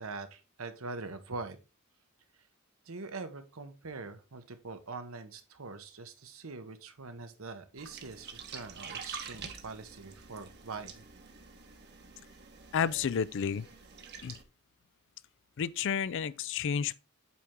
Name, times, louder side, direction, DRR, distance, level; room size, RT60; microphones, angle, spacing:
voice 1, 0.0-1.6 2.3-2.5 2.8-11.0, right 3 dB, 70° right, 1.0 m, -43 dB
sound 1, 7.8-14.4, right 5 dB, 50° right, 1.1 m, -47 dB
voice 2, 12.7-13.7 14.2-14.4 15.6-17.0, left 7 dB, 60° left, 0.4 m, -31 dB
8.3 x 4.4 x 3.7 m
head